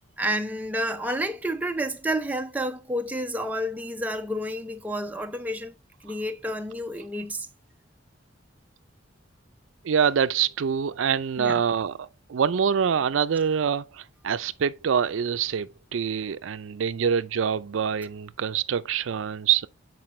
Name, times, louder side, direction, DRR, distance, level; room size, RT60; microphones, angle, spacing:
voice 1, 0.2-5.7 6.0-7.5 11.4-11.6, equal, 10° right, 0.5 m, -30 dB
voice 2, 9.8-19.7, right 7 dB, 80° right, 0.4 m, -25 dB
7.5 x 4.7 x 3.2 m
head